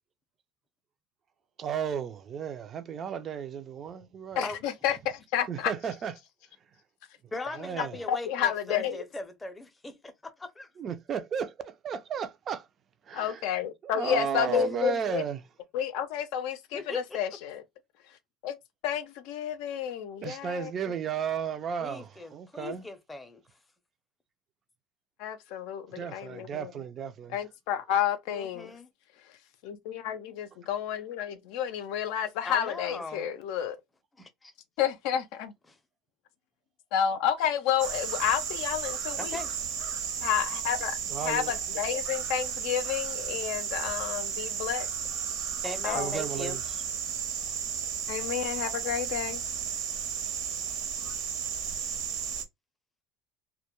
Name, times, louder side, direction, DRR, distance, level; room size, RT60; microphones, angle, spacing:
voice 1, 1.6-4.4 5.5-6.1 7.5-8.0 10.8-12.7 13.1-13.4 13.8-15.4 20.2-22.8 25.9-27.4 41.1-41.5 45.9-46.6 48.2-48.3, right 7 dB, 40° right, 0.4 m, -34 dB
voice 2, 4.4-5.7 8.1-9.0 13.1-15.2 15.7-17.6 18.1-18.2 18.4-18.6 18.8-20.7 25.2-26.7 27.3-28.8 29.2-29.4 29.6-33.8 34.8-35.5 36.9-39.4 40.2-44.9 45.8-46.2 48.1-49.4, left 9 dB, 75° left, 0.4 m, -30 dB
voice 3, 7.3-10.7 14.5-14.6 16.7-17.0 21.8-23.4 28.3-28.9 32.4-33.3 34.2-34.5 35.7-35.8 39.2-39.5 45.6-46.6 51.0-51.2, left 2 dB, 15° left, 0.5 m, -39 dB
sound 1, 37.8-52.4, right 7 dB, 65° right, 0.7 m, -33 dB
2.2 x 2.1 x 2.9 m
supercardioid pair, 120°, 0 cm